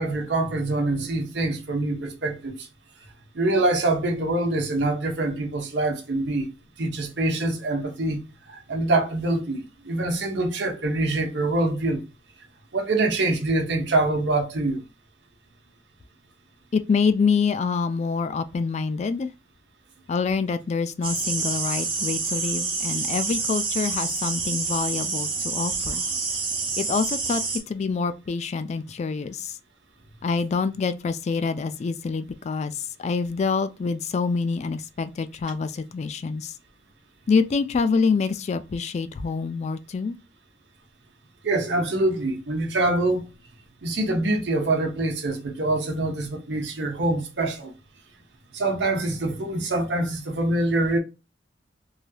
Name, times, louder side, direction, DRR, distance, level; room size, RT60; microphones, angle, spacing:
voice 1, 0.0-2.7 3.3-6.5 6.8-8.2 8.5-12.0 12.7-14.8 41.4-43.3 43.8-47.7 48.5-51.0, right 2 dB, 70° right, 0.8 m, -25 dB
voice 2, 16.7-19.3 20.1-26.0 26.8-29.6 30.2-36.5 37.3-40.2, left 5 dB, 40° left, 0.3 m, -26 dB
sound 1, 21.0-27.6, right 4 dB, 30° right, 0.8 m, -28 dB
3.2 x 2.7 x 2.2 m
head